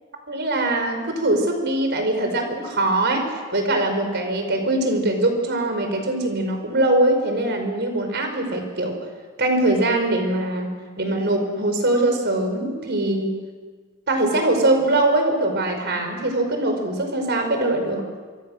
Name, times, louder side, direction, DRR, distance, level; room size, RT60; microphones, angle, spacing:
voice 1, 0.3-3.2 3.5-8.9 9.4-10.7 11.0-13.3 14.1-18.0, right 2 dB, 50° right, 5 dB, 5.0 m, -22 dB
26.5 x 25.5 x 6.5 m, 1.5 s
head